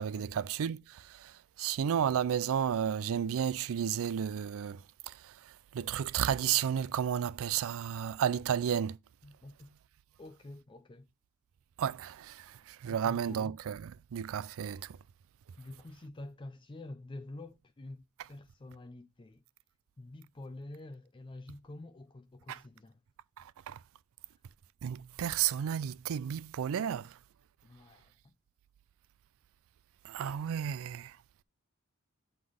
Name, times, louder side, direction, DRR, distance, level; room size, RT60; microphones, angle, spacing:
voice 1, 0.0-9.0 11.8-15.0 22.5-22.6 23.4-23.8 24.8-27.2 30.0-31.2, right 8 dB, 65° right, 0.4 m, -33 dB
voice 2, 9.2-9.7 10.2-11.1 12.9-13.6 15.6-18.0 18.3-19.4 20.0-23.0 27.6-28.3, left 2 dB, 20° left, 0.5 m, -48 dB
7.8 x 3.8 x 4.9 m
head